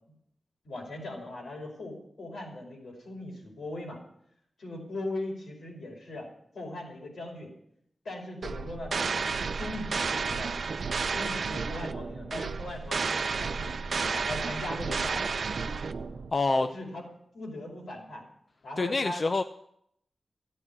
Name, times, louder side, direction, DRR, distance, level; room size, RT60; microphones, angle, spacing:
voice 1, 0.6-4.0 4.6-6.3 6.5-7.5 8.1-10.5 11.1-13.7 14.1-15.4 16.5-17.1 17.3-18.2 18.6-19.2, left 1 dB, 80° left, -1 dB, 5.2 m, -39 dB
sound 1, 8.4-16.3, right 5 dB, 65° right, 0.6 m, -32 dB
voice 2, 16.3-16.7 18.8-19.4, left 3 dB, 40° left, 9 dB, 0.6 m, -26 dB
14.5 x 8.5 x 8.6 m, 0.73 s
wide cardioid pair, 115°, 0 cm